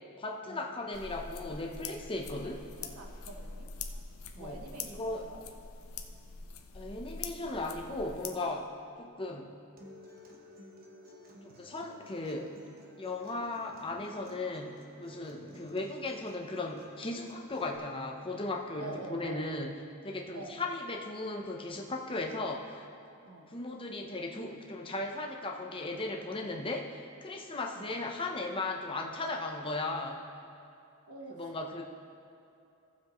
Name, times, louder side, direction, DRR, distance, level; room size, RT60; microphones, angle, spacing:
voice 1, 0.2-2.7 4.4-4.6 5.0-5.3 6.7-8.7 9.0-9.5 11.4-12.6 13.0-19.7 20.0-22.9 23.5-30.2 31.3-31.8, left 2 dB, 25° left, 2 dB, 0.8 m, -37 dB
sound 1, 0.9-8.3, left 5 dB, 70° left, 0.7 m, -44 dB
voice 2, 2.8-3.7 4.3-5.4 15.4-15.8 18.8-19.5 20.3-20.6 23.2-23.5 27.7-28.0 31.1-31.8, right 2 dB, 90° right, 0 dB, 1.2 m, -46 dB
Acoustic guitar, 9.8-17.8, left 1 dB, 40° right, 1.1 m, -54 dB
16.0 x 7.3 x 3.1 m, 2.7 s
head